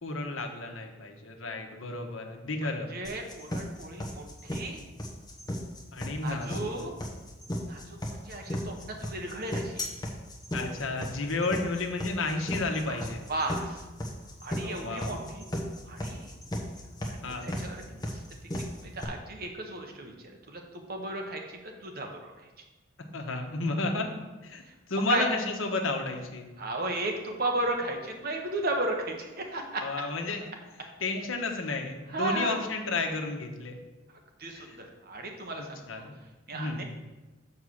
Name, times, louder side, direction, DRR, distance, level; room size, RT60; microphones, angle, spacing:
voice 1, 0.0-2.9 5.9-6.7 10.5-13.2 14.6-15.2 17.2-17.5 23.1-24.1 24.4-24.6 24.9-26.5 29.8-30.5 31.0-33.7 34.5-34.8 35.6-36.1 36.5-36.8, left 3 dB, 85° left, 3 dB, 1.1 m, -32 dB
voice 2, 2.6-4.8 6.2-6.9 7.7-9.8 12.9-13.0 13.3-13.8 14.4-15.5 15.9-16.3 17.0-17.1 17.4-18.2 18.5-20.1 20.5-20.6 20.9-22.5 24.7-24.8 25.1-25.2 26.6-29.8 32.1-32.6 34.4-36.0 36.5-36.8, right 2 dB, 50° right, 2 dB, 1.2 m, -34 dB
sound 1, 3.0-19.0, equal, 20° left, 1.1 m, -35 dB
7.2 x 4.7 x 6.4 m, 1.2 s
head